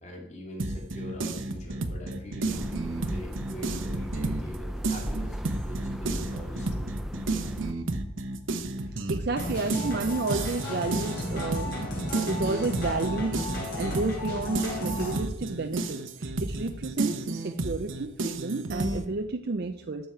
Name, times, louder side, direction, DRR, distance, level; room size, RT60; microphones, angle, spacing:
voice 1, 0.0-6.9, left 1 dB, 35° left, 0 dB, 2.5 m, -43 dB
sound 1, 0.6-4.5 4.8-19.0, right 2 dB, 75° right, 0.9 m, -32 dB
sound 2, 2.5-7.7, equal, ahead, 0.5 m, -36 dB
voice 2, 9.1-20.1, right 3 dB, 50° right, 6 dB, 0.5 m, -31 dB
sound 3, 9.4-15.2, left 1 dB, 50° left, 3.8 m, -33 dB
12.0 x 7.1 x 4.5 m, 0.91 s
head